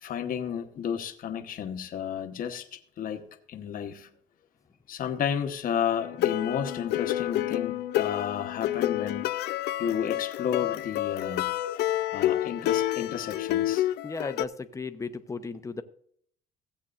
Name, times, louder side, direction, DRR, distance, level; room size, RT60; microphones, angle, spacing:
voice 1, 0.0-4.1 4.9-9.2 9.8-11.5 12.1-13.9, left 8 dB, 55° left, 6 dB, 1.1 m, -32 dB
sound 1, 6.0-14.5, left 14 dB, 75° left, 0.5 m, -29 dB
voice 2, 14.0-15.8, left 4 dB, 20° left, 11 dB, 0.8 m, -35 dB
16.0 x 8.1 x 2.5 m, 0.63 s
cardioid pair, 110°, 17 cm